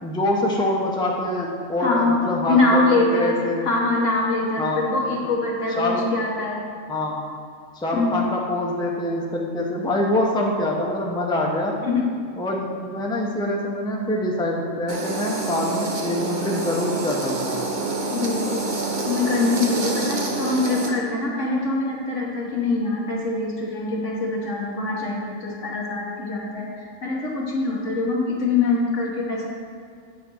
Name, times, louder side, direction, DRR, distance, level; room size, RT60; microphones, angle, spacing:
voice 1, 0.0-2.9 3.1-3.6 4.6-4.8 5.8-6.0 6.9-7.2 7.7-11.7 12.4-17.6, left 1 dB, 5° left, -2 dB, 0.7 m, -25 dB
voice 2, 1.8-2.2 2.5-6.6 7.9-8.3 11.8-12.1 18.1-18.7 19.0-29.5, left 3 dB, 75° left, -3 dB, 1.7 m, -23 dB
sound 1, 14.9-20.9, right 3 dB, 45° right, 0.9 m, -27 dB
8.5 x 4.1 x 6.2 m, 2.3 s
omnidirectional pair, 1.3 m